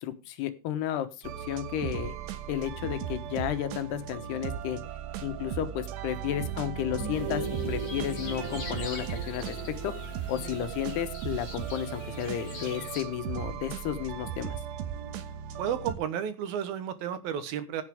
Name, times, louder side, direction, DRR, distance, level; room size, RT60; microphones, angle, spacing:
voice 1, 0.0-2.1 2.5-4.8 5.2-9.9 10.3-14.6, left 11 dB, 75° left, 10 dB, 3.2 m, -33 dB
sound 1, 1.2-16.0, right 9 dB, 90° right, 3.4 m, -37 dB
sound 2, 6.7-11.6, right 2 dB, 5° right, 3.3 m, -38 dB
sound 3, 7.1-13.0, left 3 dB, 40° left, 4.8 m, -45 dB
voice 2, 15.6-17.8, right 9 dB, 70° right, 11 dB, 2.8 m, -32 dB
16.0 x 8.8 x 3.6 m, 0.28 s
omnidirectional pair, 4.8 m